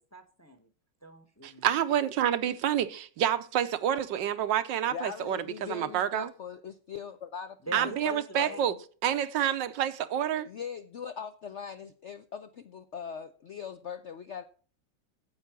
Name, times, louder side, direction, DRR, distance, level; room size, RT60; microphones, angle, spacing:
voice 1, 0.1-0.7 1.0-1.6 7.7-8.6, right 3 dB, 15° left, 0.7 m, -42 dB
voice 2, 1.4-6.3 7.7-8.7 9.0-10.5, right 10 dB, 80° right, 1.5 m, -28 dB
voice 3, 4.9-8.7 10.5-14.4, left 7 dB, 65° left, 0.7 m, -41 dB
9.3 x 8.0 x 6.0 m
omnidirectional pair, 2.0 m